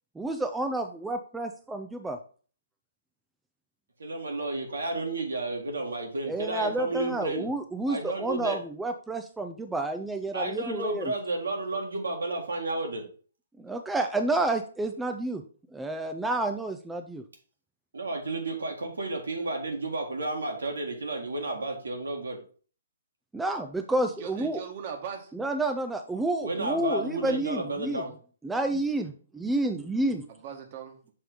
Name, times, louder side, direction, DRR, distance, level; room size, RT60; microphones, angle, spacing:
voice 1, 0.2-2.2 6.3-11.1 13.6-15.4 15.7-17.2 23.3-24.6 25.3-28.0 28.4-29.1 29.4-30.3, right 2 dB, 5° right, 5 dB, 0.4 m, -30 dB
voice 2, 4.0-7.5 7.9-8.6 10.3-13.0 17.9-22.4 26.4-28.1, right 2 dB, 75° right, 2 dB, 1.7 m, -32 dB
voice 3, 24.2-25.3 30.3-31.1, right 7 dB, 40° right, 4 dB, 1.2 m, -39 dB
6.3 x 3.3 x 4.8 m, 0.42 s
figure-of-eight pair, 135°, 0 cm